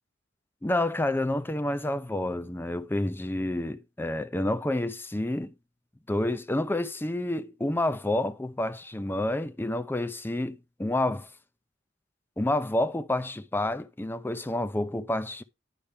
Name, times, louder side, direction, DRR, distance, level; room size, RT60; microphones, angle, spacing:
voice 1, 0.6-5.5 6.1-11.3 12.4-15.4, left 1 dB, 10° left, 0.5 m, -29 dB
9.9 x 5.5 x 3.5 m
head